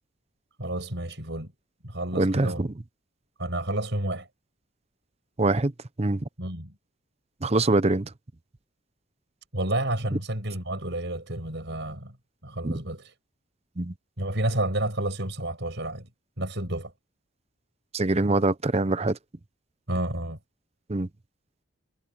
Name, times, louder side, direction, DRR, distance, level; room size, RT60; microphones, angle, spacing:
voice 1, 0.6-1.5 1.8-2.6 3.4-4.3 6.4-6.7 9.5-12.2 12.4-13.1 14.2-16.1 16.4-16.9 19.9-20.4, right 1 dB, 55° right, 6.2 m, -30 dB
voice 2, 2.2-2.7 5.4-5.7 6.0-6.2 7.4-8.1 12.6-12.8 13.8-13.9 17.9-19.2 20.9-21.1, right 2 dB, 30° right, 0.7 m, -24 dB
head